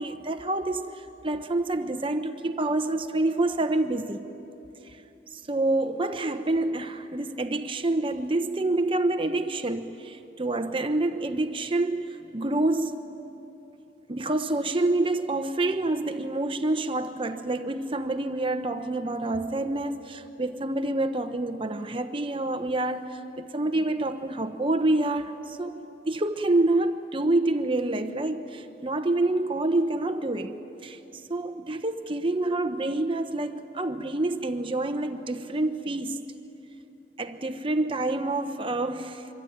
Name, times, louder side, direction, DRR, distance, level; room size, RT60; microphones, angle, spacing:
voice 1, 0.0-4.3 4.8-5.0 5.3-13.0 14.1-25.8 26.1-30.6 30.8-36.3 37.2-39.3, right 2 dB, 30° right, 0.9 m, -27 dB
25.0 x 24.5 x 9.4 m
head